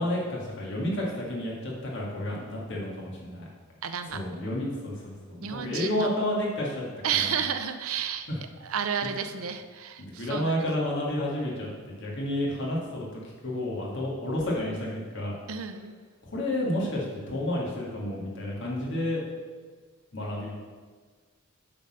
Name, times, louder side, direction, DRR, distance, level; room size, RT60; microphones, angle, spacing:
voice 1, 0.0-3.5 4.1-6.8 7.2-7.4 8.3-8.4 10.0-15.4 16.2-19.2 20.1-20.5, left 1 dB, 55° left, -3 dB, 2.0 m, -31 dB
voice 2, 3.8-4.2 5.4-6.1 7.0-8.3 8.6-10.6 15.5-16.0, right 7 dB, 75° right, 8 dB, 0.6 m, -31 dB
8.6 x 4.0 x 6.4 m, 1.5 s
head